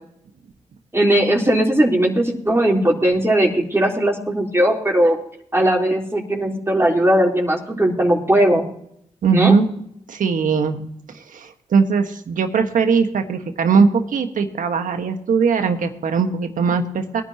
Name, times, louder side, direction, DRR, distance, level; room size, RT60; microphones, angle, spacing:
voice 1, 0.9-5.2 5.5-8.7 9.3-9.5, right 1 dB, 20° right, -2 dB, 3.7 m, -18 dB
voice 2, 9.2-9.7 10.1-10.8 11.3-17.2, right 5 dB, 80° right, 6 dB, 1.5 m, -19 dB
22.0 x 10.5 x 2.9 m, 0.71 s
cardioid pair, 50°, 13 cm